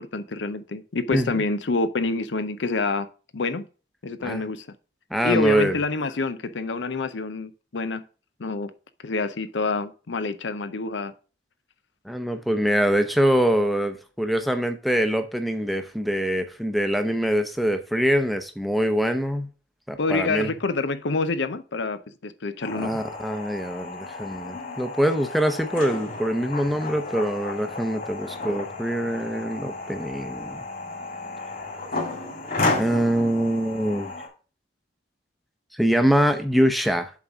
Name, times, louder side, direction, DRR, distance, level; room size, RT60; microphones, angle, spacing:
voice 1, 0.0-3.1 3.3-3.7 4.0-4.7 5.2-8.0 8.4-8.7 9.0-11.1 20.0-23.0, left 3 dB, 75° left, 0.7 m, -27 dB
voice 2, 1.1-1.4 4.2-4.4 5.1-5.8 12.0-19.5 19.9-20.5 22.8-30.6 32.7-34.1 35.7-37.1, equal, ahead, 0.7 m, -24 dB
sound 1, 22.6-34.3, left 3 dB, 45° left, 2.8 m, -33 dB
7.3 x 4.0 x 5.8 m
head